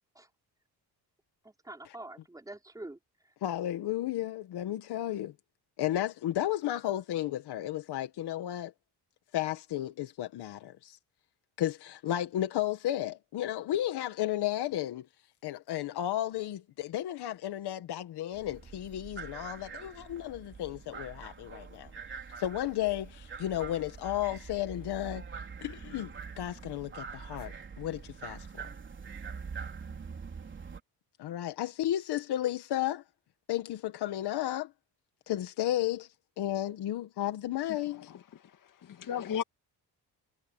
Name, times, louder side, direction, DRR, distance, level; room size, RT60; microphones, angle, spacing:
voice 1, 1.4-3.3, right 2 dB, 10° right, 4.8 m, -46 dB
voice 2, 3.4-5.3 5.8-8.7 9.3-11.0 11.6-15.1 15.4-21.9 22.4-25.2 25.6-28.7 31.2-33.0 33.5-34.7 35.3-36.1 36.4-38.1, left 13 dB, 70° left, 1.7 m, -33 dB
sound 1, 18.3-30.8, right 5 dB, 30° right, 3.8 m, -44 dB
voice 3, 37.8-39.4, left 9 dB, 50° left, 2.3 m, -37 dB
cardioid pair, 170°, 41 cm